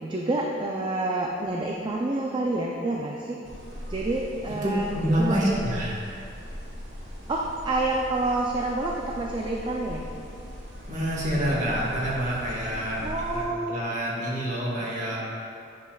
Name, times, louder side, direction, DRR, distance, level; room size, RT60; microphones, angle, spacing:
voice 1, 0.0-3.4 3.9-4.9 5.2-5.6 7.3-10.1 13.0-13.8, right 2 dB, 25° right, -1 dB, 0.4 m, -28 dB
sound 1, 3.4-13.5, equal, 70° right, 1.4 m, -39 dB
voice 2, 4.6-6.0 10.9-13.0 13.3-15.2, equal, 40° right, -5 dB, 1.5 m, -27 dB
9.7 x 5.3 x 2.3 m, 2.6 s
head